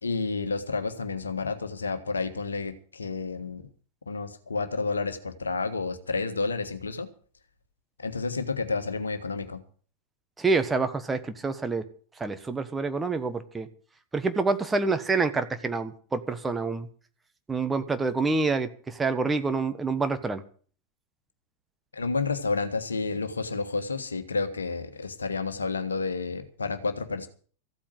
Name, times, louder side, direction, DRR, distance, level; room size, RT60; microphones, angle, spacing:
voice 1, 0.0-3.6 4.1-7.1 8.0-9.6 21.9-27.3, left 4 dB, 75° left, 9 dB, 1.5 m, -30 dB
voice 2, 10.4-11.8 12.2-13.7 14.1-16.9 17.5-20.4, right 4 dB, 10° right, 9 dB, 1.4 m, -27 dB
15.0 x 8.6 x 7.8 m, 0.43 s
figure-of-eight pair, 90°, 0 cm